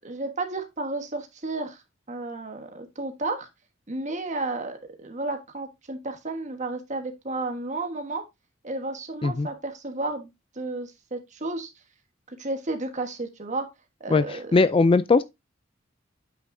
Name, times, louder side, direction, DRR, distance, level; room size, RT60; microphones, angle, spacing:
voice 1, 0.0-3.5 3.9-8.2 8.6-10.3 10.5-11.7 12.3-13.7 14.0-14.6, right 2 dB, 40° right, 1.3 m, -32 dB
voice 2, 14.1-15.2, left 3 dB, 25° left, 0.3 m, -20 dB
8.7 x 6.0 x 2.6 m
head